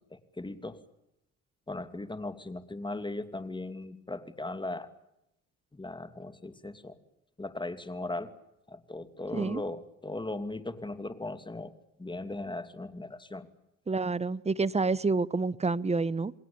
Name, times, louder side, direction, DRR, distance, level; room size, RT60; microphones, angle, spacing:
voice 1, 0.1-0.8 1.7-4.9 5.7-7.0 7.4-8.3 8.7-11.7 12.0-13.5, left 2 dB, 15° left, 11 dB, 2.6 m, -38 dB
voice 2, 13.9-16.3, right 4 dB, 20° right, 19 dB, 0.9 m, -28 dB
28.5 x 20.5 x 8.7 m, 0.85 s
cardioid pair, 90°, 30 cm